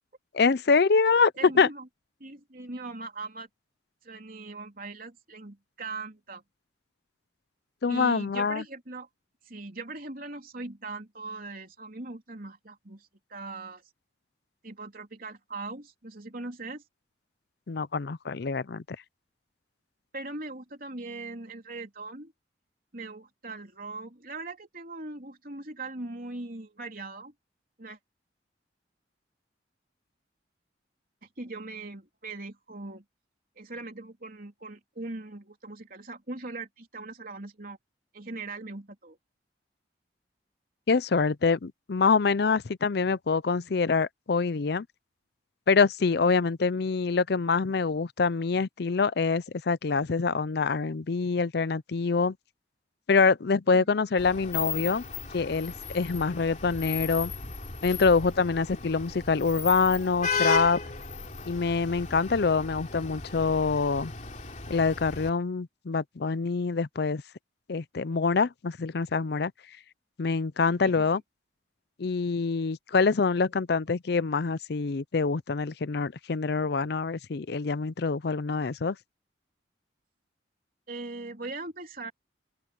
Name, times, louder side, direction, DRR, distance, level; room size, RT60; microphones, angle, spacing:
voice 1, 0.3-1.7 7.8-8.6 17.7-18.8 40.9-44.9 45.7-52.4 53.1-55.0 55.3-57.3 57.8-60.8 61.5-64.1 64.7-67.2 67.7-69.5 70.2-71.2 72.0-79.0, left 4 dB, 60° left, 0.5 m, -25 dB
voice 2, 1.4-1.9 2.2-3.5 4.0-6.4 7.9-9.1 9.5-13.8 14.6-16.8 20.1-22.3 22.9-27.3 27.8-28.0 31.2-33.0 33.6-37.8 38.1-39.2 53.7-53.9 70.8-71.2 80.9-82.1, right 3 dB, 50° right, 3.7 m, -40 dB
Vehicle horn car horn honking / Traffic noise roadway noise, 54.2-65.3, left 5 dB, 40° left, 3.2 m, -36 dB
open air
head